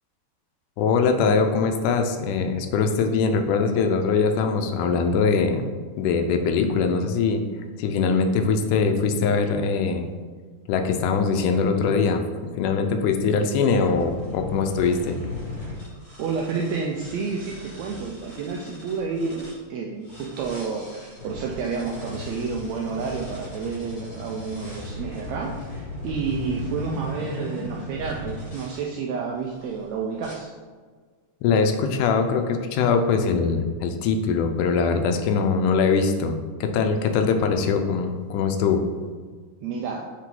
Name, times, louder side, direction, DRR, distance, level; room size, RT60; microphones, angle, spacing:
voice 1, 0.8-5.6 6.0-7.4 7.8-10.1 10.7-12.2 12.6-15.2 31.4-38.8, left 5 dB, 85° left, 6 dB, 2.1 m, -22 dB
sound 1, 13.8-19.6 20.0-28.8 29.5-29.8 30.2-30.3, left 1 dB, 30° left, 1.2 m, -37 dB
voice 2, 16.2-30.5 39.6-40.1, right 5 dB, 80° right, 0 dB, 1.6 m, -30 dB
7.5 x 3.6 x 3.8 m, 1.5 s
omnidirectional pair, 3.6 m